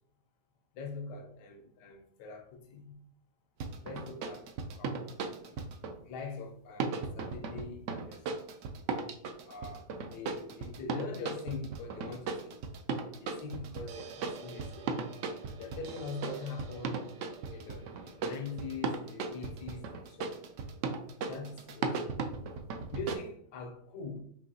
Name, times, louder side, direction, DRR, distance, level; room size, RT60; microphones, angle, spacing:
voice 1, 0.7-3.0 3.8-4.5 4.8-5.1 5.4-5.6 6.0-8.5 9.5-12.6 13.2-14.9 15.6-17.1 17.5-20.4 21.3-22.2 22.9-24.2, left 4 dB, 80° left, 1.3 m, -43 dB
sound 1, 3.6-6.0 6.8-23.1, right 4 dB, 80° right, 0.6 m, -37 dB
5.5 x 2.8 x 2.7 m
omnidirectional pair, 1.8 m